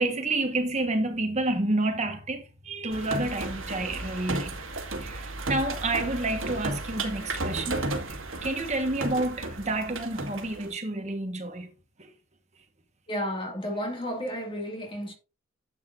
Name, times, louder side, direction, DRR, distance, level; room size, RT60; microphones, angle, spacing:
voice 1, 0.0-4.6 5.0-7.8 8.1-11.7 12.0-12.1, right 2 dB, 35° right, 1.4 m, -29 dB
sound 1, 2.9-10.7, right 2 dB, 75° right, 2.1 m, -33 dB
voice 2, 13.1-15.1, equal, 25° left, 2.3 m, -32 dB
11.5 x 8.1 x 2.6 m
head